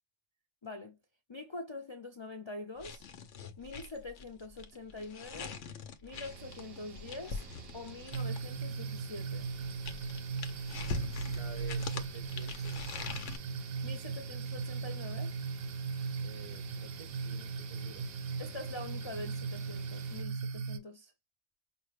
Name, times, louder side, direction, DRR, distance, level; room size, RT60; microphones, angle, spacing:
voice 1, 0.6-1.0 1.3-3.0 3.6-5.6 6.0-7.5 7.7-9.5 13.8-15.3 18.4-21.1, left 2 dB, 35° left, 0.5 m, -44 dB
sound 1, 2.8-8.6 9.4-13.4, left 4 dB, 85° left, 1.1 m, -42 dB
sound 2, 6.1-20.2, right 5 dB, 60° right, 0.9 m, -50 dB
sound 3, 8.1-20.8, right 5 dB, 90° right, 1.0 m, -38 dB
voice 2, 11.3-13.1 16.2-18.1, right 4 dB, 30° right, 0.9 m, -51 dB
5.3 x 2.2 x 3.1 m
omnidirectional pair, 1.2 m